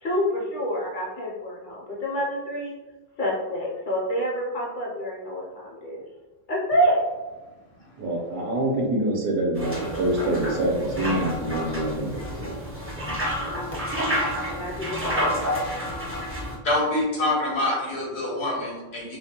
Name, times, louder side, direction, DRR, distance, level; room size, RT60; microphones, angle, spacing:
voice 1, 0.0-2.7 3.2-6.0 6.5-7.0 14.0-15.5, equal, 55° left, -4 dB, 0.6 m, -27 dB
voice 2, 8.0-12.5, right 1 dB, 70° right, -2 dB, 0.8 m, -26 dB
sound 1, 9.5-16.5, equal, 20° right, 0.4 m, -29 dB
voice 3, 16.6-19.2, left 1 dB, 75° left, -3 dB, 1.0 m, -25 dB
2.3 x 2.1 x 2.7 m, 1.2 s
omnidirectional pair, 1.1 m